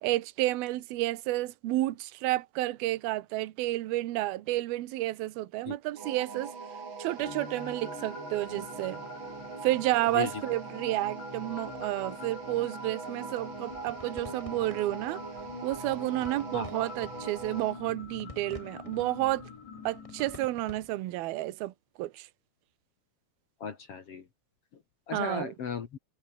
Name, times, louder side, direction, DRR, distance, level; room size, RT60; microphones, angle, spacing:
voice 1, 0.0-6.5 7.0-9.0 9.6-15.2 15.6-19.4 19.8-21.7 22.0-22.3 25.1-25.5, right 16 dB, 70° right, 2.8 m, -31 dB
sound 1, 6.0-17.8, right 5 dB, 30° right, 3.5 m, -42 dB
sound 2, 7.2-20.5, left 6 dB, 75° left, 7.5 m, -46 dB
sound 3, 13.4-20.9, left 2 dB, 10° left, 1.8 m, -51 dB
voice 2, 23.6-24.3 25.1-26.0, left 6 dB, 50° left, 1.8 m, -36 dB
omnidirectional pair, 5.1 m